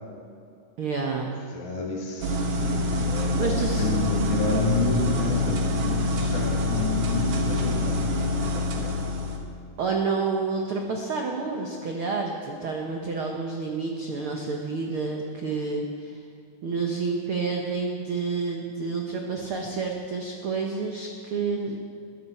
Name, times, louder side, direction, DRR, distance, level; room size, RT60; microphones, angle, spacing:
voice 1, 0.8-1.3 3.3-3.9 9.8-16.2 16.6-21.8, right 4 dB, 85° right, 1 dB, 1.1 m, -29 dB
voice 2, 1.5-3.5 3.8-9.3, left 2 dB, 90° left, -2 dB, 3.8 m, -30 dB
sound 1, 2.2-9.4, left 2 dB, 55° right, 1.8 m, -26 dB
21.0 x 14.5 x 4.4 m, 2.5 s
omnidirectional pair, 4.2 m